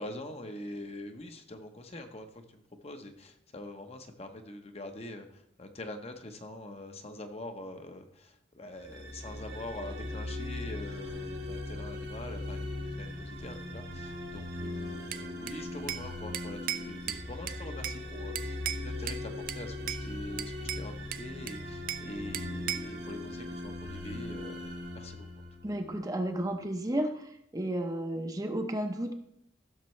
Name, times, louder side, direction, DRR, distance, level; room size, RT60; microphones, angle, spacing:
voice 1, 0.0-24.6 24.9-25.4, left 1 dB, 35° left, 6 dB, 0.9 m, -44 dB
sound 1, 8.8-25.9, left 2 dB, 80° right, 2.4 m, -39 dB
Bell / Glass, 15.1-16.1 16.3-18.0 18.4-19.2 19.5-20.1 20.4-22.1 22.3-23.0, right 11 dB, 50° right, 0.4 m, -37 dB
voice 2, 25.6-29.1, right 1 dB, 20° right, 5 dB, 0.7 m, -32 dB
15.0 x 6.7 x 3.2 m, 0.76 s
head